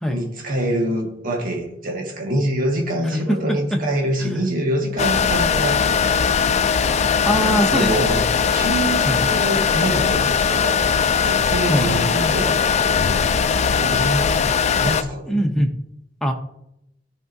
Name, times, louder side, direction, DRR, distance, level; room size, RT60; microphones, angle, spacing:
voice 1, 0.1-6.1 7.2-8.2 8.5-10.8 11.1-13.0 13.4-14.3 14.8-15.4, right 1 dB, 50° right, 1 dB, 1.6 m, -25 dB
sound 1, 5.0-15.0, left 6 dB, 40° left, 0.4 m, -19 dB
voice 2, 7.2-8.3 9.0-9.3 11.7-12.1 15.3-15.7 16.2-16.3, equal, 5° left, 2 dB, 0.7 m, -22 dB
13.5 x 4.8 x 2.7 m, 0.79 s
head